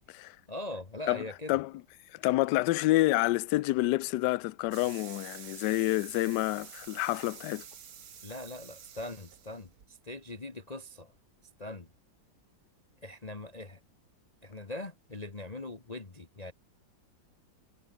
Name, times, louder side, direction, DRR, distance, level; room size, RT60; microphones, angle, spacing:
voice 1, 0.5-1.6 8.2-11.1 11.6-11.9 13.0-13.8 14.4-16.5, left 2 dB, 25° left, 1.3 m, -41 dB
voice 2, 2.2-7.6, left 18 dB, 70° left, 1.1 m, -28 dB
sound 1, 4.7-9.8, right 8 dB, 55° right, 1.7 m, -49 dB
omnidirectional pair, 2.1 m